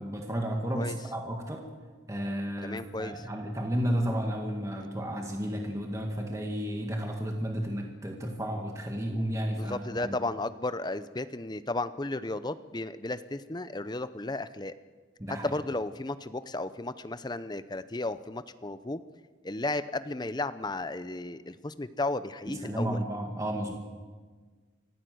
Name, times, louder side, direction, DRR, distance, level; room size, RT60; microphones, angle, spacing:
voice 1, 0.0-1.6 2.1-10.2 15.2-15.5 22.5-23.8, equal, 15° right, 1 dB, 1.9 m, -32 dB
voice 2, 2.6-3.2 9.4-14.7 15.4-19.0 19.4-23.0, left 2 dB, 20° left, 13 dB, 0.7 m, -34 dB
25.5 x 15.5 x 7.9 m, 1.5 s
head